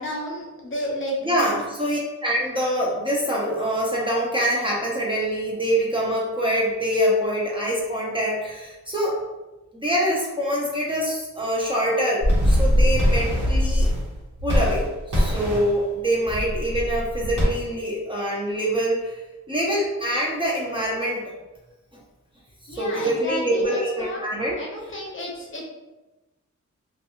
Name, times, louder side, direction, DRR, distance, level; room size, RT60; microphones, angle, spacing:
voice 1, 0.0-1.6 22.7-24.2 24.6-25.6, equal, 40° left, -2 dB, 0.6 m, -31 dB
voice 2, 1.2-9.2 9.7-13.9 14.4-19.2 19.5-21.3 22.7-24.5 24.9-25.0, equal, 15° right, -4 dB, 0.5 m, -25 dB
sound 1, 12.2-14.1 14.4-15.7 16.2-17.4, equal, 85° right, 1.0 m, -21 dB
2.5 x 2.3 x 2.8 m, 1.1 s
wide cardioid pair, 120°, 30 cm